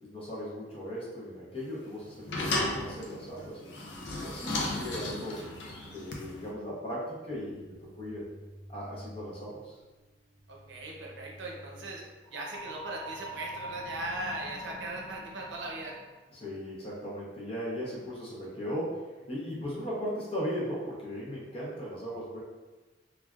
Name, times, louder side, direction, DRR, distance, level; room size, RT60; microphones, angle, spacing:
voice 1, 0.0-5.4 5.9-8.3 8.7-9.8 16.3-19.0 19.3-22.4, equal, 30° left, -6 dB, 0.8 m, -37 dB
sound 1, 1.6-6.5, left 2 dB, 70° left, 0.5 m, -35 dB
sound 2, 7.3-14.5, equal, 5° left, 0.4 m, -53 dB
voice 2, 10.5-12.0 12.3-16.0, right 2 dB, 85° right, -1 dB, 0.6 m, -39 dB
sound 3, 12.2-16.2, right 1 dB, 30° right, 1.0 m, -43 dB
3.3 x 2.4 x 2.3 m, 1.2 s
head